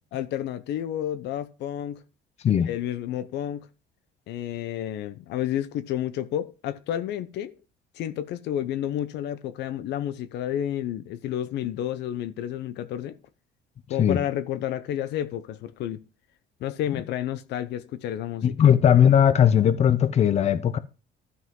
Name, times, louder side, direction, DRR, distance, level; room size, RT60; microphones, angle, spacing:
voice 1, 0.1-2.0 2.5-3.7 4.3-7.6 7.9-13.2 13.9-16.0 16.6-18.5, left 11 dB, 75° left, 0.7 m, -30 dB
voice 2, 18.4-20.8, left 9 dB, 40° left, 0.7 m, -18 dB
12.5 x 5.6 x 3.7 m
cardioid pair, 140°, 18 cm